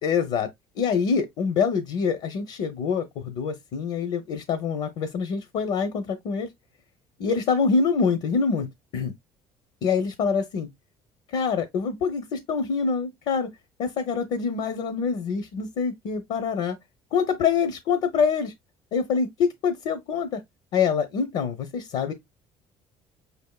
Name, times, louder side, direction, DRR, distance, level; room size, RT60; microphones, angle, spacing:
voice 1, 0.0-0.5 0.8-6.5 7.2-8.7 8.9-9.1 9.8-10.7 11.3-13.5 13.8-16.8 17.1-18.5 18.9-20.4 20.7-22.1, left 5 dB, 70° left, 0.7 m, -25 dB
5.0 x 3.4 x 2.3 m
cardioid pair, 110°, 11 cm